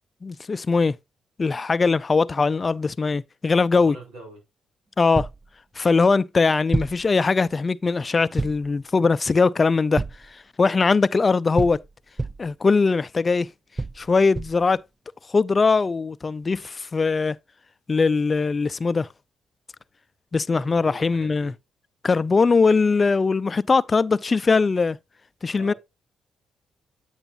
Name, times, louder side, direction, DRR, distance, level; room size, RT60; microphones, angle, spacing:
voice 1, 0.2-1.0 1.4-4.0 5.0-5.3 5.8-11.8 12.4-13.5 14.0-14.8 15.3-17.4 17.9-19.1 20.3-21.5 22.0-25.0 25.4-25.7, left 4 dB, 35° left, 0.5 m, -21 dB
voice 2, 3.7-4.4 20.6-21.5 25.5-25.8, right 2 dB, 80° right, 4.5 m, -43 dB
sound 1, 5.1-5.5 6.7-7.1 8.4-8.7 10.0-10.3 11.6-12.5 13.8-14.7, right 2 dB, 20° right, 0.4 m, -28 dB
9.0 x 8.0 x 2.6 m
supercardioid pair, 55°, 0 cm